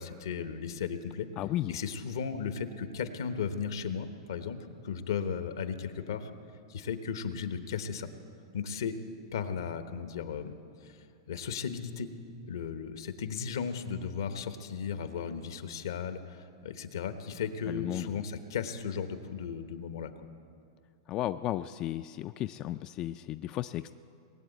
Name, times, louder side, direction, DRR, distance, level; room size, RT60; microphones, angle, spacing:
voice 1, 0.0-1.3 1.7-4.6 4.8-6.3 6.7-8.1 8.5-9.0 9.3-10.5 10.8-12.1 12.5-20.1, left 6 dB, 80° left, 9 dB, 1.1 m, -35 dB
voice 2, 1.4-1.8 17.7-18.1 21.1-23.9, left 14 dB, 35° left, 11 dB, 0.3 m, -34 dB
20.0 x 7.9 x 9.2 m, 2.5 s
hypercardioid pair, 120°, 2 cm